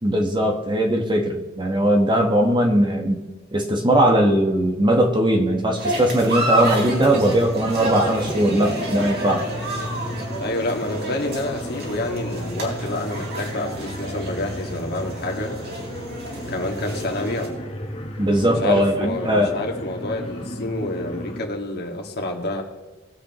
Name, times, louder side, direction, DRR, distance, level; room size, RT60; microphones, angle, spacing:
voice 1, 0.0-3.2 3.5-9.5 18.2-19.6, right 1 dB, 25° right, 3 dB, 1.4 m, -19 dB
sound 1, 5.8-17.5, right 1 dB, 50° right, 3.8 m, -29 dB
sound 2, 6.7-21.4, left 1 dB, 30° left, 1.1 m, -34 dB
voice 2, 10.4-15.5 16.5-17.5 18.5-22.6, left 1 dB, 50° left, 2 dB, 2.0 m, -28 dB
21.0 x 8.0 x 3.1 m, 1.2 s
head